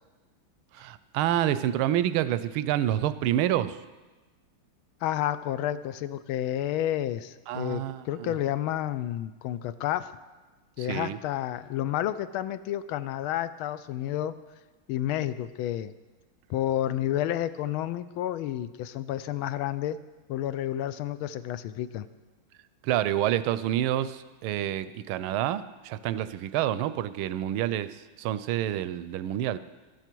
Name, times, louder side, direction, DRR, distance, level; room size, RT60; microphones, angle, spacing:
voice 1, 0.7-3.8 7.5-8.4 10.8-11.2 22.8-29.6, right 12 dB, 80° right, 15 dB, 1.4 m, -28 dB
voice 2, 5.0-10.1 10.8-14.4 14.9-15.9 16.5-20.0 20.3-22.1, left 12 dB, 80° left, 14 dB, 1.4 m, -30 dB
13.5 x 13.0 x 4.5 m, 1.2 s
omnidirectional pair, 2.3 m